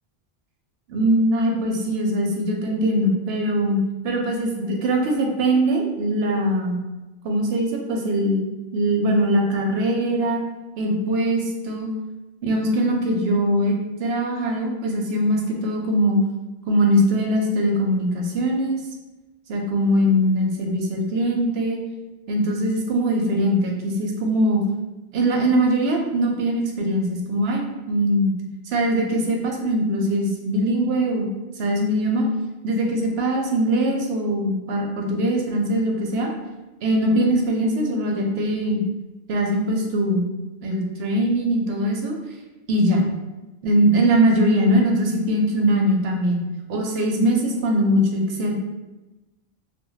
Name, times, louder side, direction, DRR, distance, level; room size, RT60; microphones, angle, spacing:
voice 1, 0.9-6.8 7.2-8.5 8.7-10.4 10.8-11.9 12.4-16.2 16.7-18.8 19.5-21.8 22.3-24.6 25.1-28.3 28.7-31.3 31.6-32.3 32.6-36.3 36.8-38.8 39.3-40.3 40.6-42.2 42.7-43.1 43.6-48.6, right 1 dB, 80° right, 1 dB, 0.8 m, -21 dB
2.1 x 2.1 x 3.8 m, 1.1 s
omnidirectional pair, 1.1 m